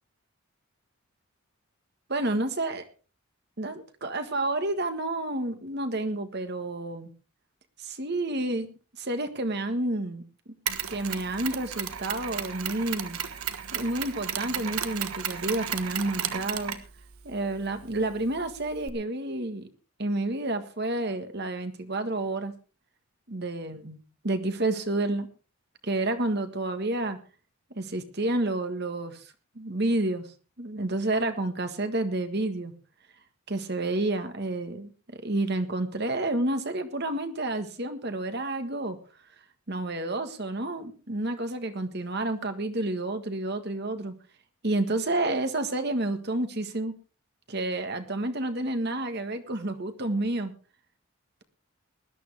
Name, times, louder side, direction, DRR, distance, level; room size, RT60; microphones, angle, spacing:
voice 1, 2.1-2.9 3.6-7.1 7.8-8.7 9.0-10.2 10.9-13.2 13.7-16.8 17.2-19.7 20.0-22.5 23.3-25.3 25.8-27.2 27.7-30.3 30.6-32.7 33.5-39.0 39.7-44.1 44.6-46.9 47.5-50.5, right 2 dB, 50° right, 8 dB, 1.6 m, -30 dB
Mechanisms, 10.7-18.9, right 9 dB, 85° right, 1.4 m, -35 dB
20.0 x 12.5 x 3.4 m, 0.33 s
head